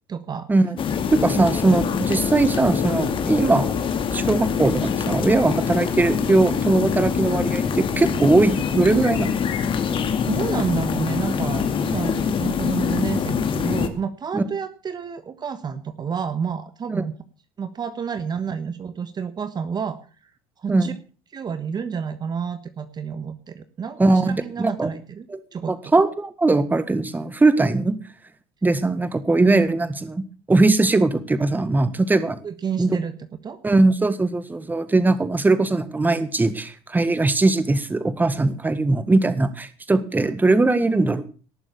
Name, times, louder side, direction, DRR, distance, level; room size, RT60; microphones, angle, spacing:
voice 1, 0.1-0.5 1.3-1.5 10.2-17.1 17.6-20.0 20.6-21.0 21.3-25.9 32.4-33.1 33.4-33.6, right 6 dB, 35° right, 11 dB, 1.4 m, -29 dB
sound 1, 0.8-13.9, left 7 dB, 40° left, 2.4 m, -24 dB
voice 2, 1.1-3.7 4.1-9.4 14.3-14.4 16.9-17.0 20.7-20.9 24.0-24.9 25.3-25.4 25.7-28.0 28.6-30.2 30.5-32.4 32.8-33.0 33.6-41.3, right 2 dB, 15° right, 13 dB, 1.6 m, -20 dB
18.5 x 7.1 x 6.9 m, 0.38 s
supercardioid pair, 100°, 13 cm